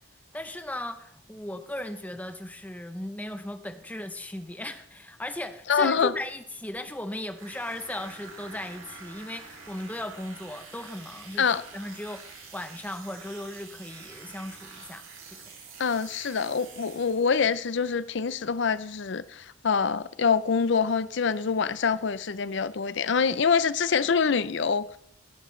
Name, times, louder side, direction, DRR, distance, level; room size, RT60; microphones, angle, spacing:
voice 1, 0.3-15.5, left 1 dB, 5° left, 0.7 m, -37 dB
voice 2, 5.7-6.1 11.4-11.6 15.8-24.9, left 6 dB, 60° left, 0.5 m, -25 dB
sound 1, 7.3-17.5, right 4 dB, 75° right, 2.6 m, -47 dB
17.5 x 10.5 x 3.2 m
head